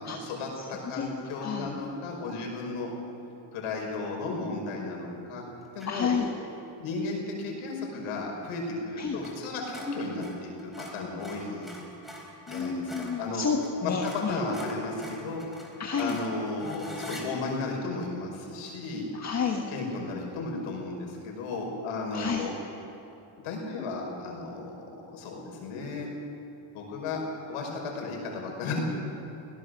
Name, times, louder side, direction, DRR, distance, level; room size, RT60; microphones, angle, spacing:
voice 1, 0.0-2.9 3.5-5.4 5.7-6.1 6.8-11.8 12.5-13.4 13.8-15.4 16.0-19.1 19.7-22.5 23.4-24.8 25.1-26.1 26.7-27.2 27.5-28.8, left 3 dB, 80° left, 0 dB, 5.5 m, -34 dB
voice 2, 1.4-1.7 5.9-6.3 9.0-9.2 12.5-14.4 15.8-16.2 19.1-19.7 22.1-22.5, left 6 dB, 35° left, 2 dB, 1.5 m, -30 dB
sound 1, 5.8-6.1 9.2-9.4 9.6-13.2 13.6-13.7 14.0-17.3, equal, ahead, 4.3 m, -44 dB
22.5 x 17.5 x 6.6 m, 2.9 s
cardioid pair, 120°, 50 cm